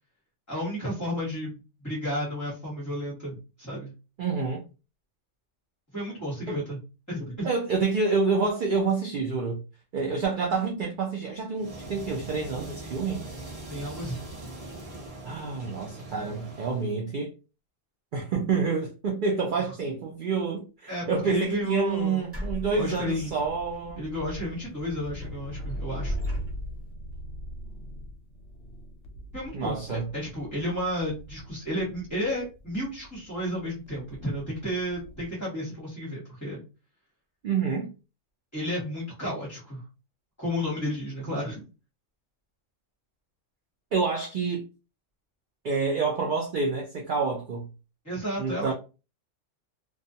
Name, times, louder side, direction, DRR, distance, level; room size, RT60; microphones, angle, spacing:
voice 1, 0.5-3.9 5.9-6.8 7.1-7.5 13.7-14.2 20.9-22.2 22.8-23.3 24.0-26.1 29.3-36.6 38.5-39.8 40.4-41.6 48.0-48.7, equal, 15° left, 0.9 m, -32 dB
voice 2, 4.2-4.6 6.5-6.6 7.4-9.6 9.9-13.2 15.2-17.3 18.1-24.0 29.5-30.1 37.4-37.9 43.9-44.6 45.6-47.7 48.4-48.7, right 4 dB, 65° right, 0.5 m, -28 dB
sound 1, 11.6-16.9, right 2 dB, 35° right, 0.7 m, -41 dB
sound 2, 21.2-21.3 22.3-23.8 24.2-24.3 24.8-26.9, left 1 dB, 10° right, 1.1 m, -38 dB
sound 3, 22.5-35.3, equal, 65° left, 0.8 m, -40 dB
2.3 x 2.3 x 2.6 m
omnidirectional pair, 1.3 m